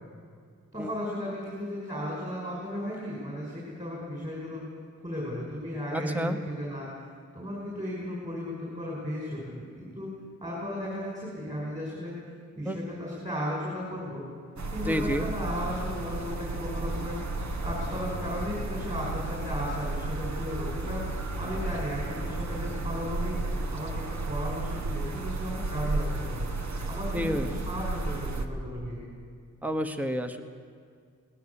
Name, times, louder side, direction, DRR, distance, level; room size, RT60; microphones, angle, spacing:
voice 1, 0.7-4.6 5.0-6.9 7.3-10.1 10.4-12.1 12.6-14.2 14.7-17.2 17.6-21.1 21.4-23.4 23.7-26.4 26.9-29.0, equal, 25° right, -4 dB, 5.7 m, -35 dB
voice 2, 5.9-6.4 12.6-12.8 14.8-15.3 27.1-27.5 29.6-30.4, equal, 5° right, 6 dB, 1.1 m, -29 dB
sound 1, 14.6-28.5, right 2 dB, 60° right, 1.6 m, -33 dB
21.0 x 19.0 x 7.1 m, 2.2 s
wide cardioid pair, 140°, 32 cm